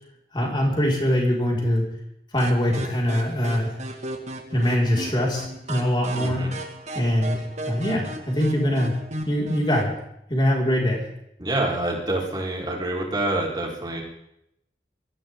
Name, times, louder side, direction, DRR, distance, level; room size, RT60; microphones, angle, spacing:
voice 1, 0.3-1.9 2.3-3.8 4.5-6.5 6.9-9.0 9.3-9.9 10.3-11.1, equal, 25° left, -2 dB, 5.3 m, -23 dB
sound 1, 2.4-9.9, right 1 dB, 40° right, 2.2 m, -36 dB
voice 2, 6.2-6.5 11.4-14.0, right 2 dB, 25° right, -2 dB, 4.5 m, -26 dB
23.5 x 14.5 x 3.9 m, 0.77 s
head